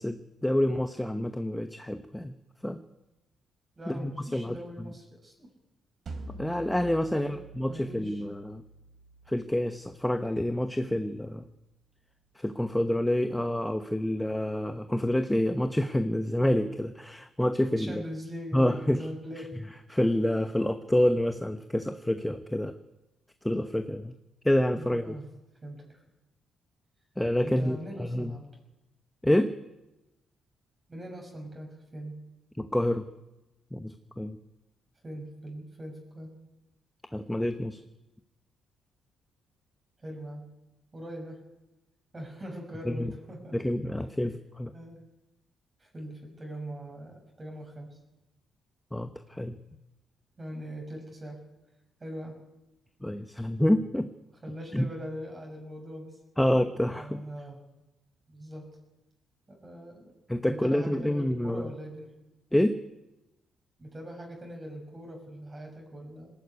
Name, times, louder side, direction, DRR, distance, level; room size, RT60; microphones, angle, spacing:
voice 1, 0.0-2.3 2.6-2.8 3.9-4.6 6.4-8.6 9.3-11.5 12.4-18.0 18.5-19.1 19.9-22.7 23.4-24.1 24.4-25.1 27.2-28.3 29.2-29.5 32.6-33.1 33.7-34.4 37.1-37.8 42.9-43.1 43.5-44.7 48.9-49.6 53.0-54.1 54.7-54.9 56.4-57.2 60.3-61.6 62.5-62.8, left 1 dB, 5° left, 8 dB, 1.0 m, -28 dB
voice 2, 3.8-5.5 7.1-7.4 7.7-8.2 17.8-19.6 24.7-25.3 25.6-26.0 27.4-28.5 30.9-32.2 35.0-36.3 40.0-40.5 40.9-41.4 42.1-43.6 44.7-45.0 45.8-47.9 50.4-51.4 52.0-52.4 54.4-56.2 56.9-57.6 58.3-58.7 59.5-60.1 60.5-62.1 63.8-66.3, equal, 25° right, 1 dB, 6.2 m, -41 dB
sound 1, 6.1-11.1, right 3 dB, 55° right, 3.7 m, -47 dB
19.5 x 14.5 x 9.6 m, 0.99 s
cardioid pair, 90°, 0 cm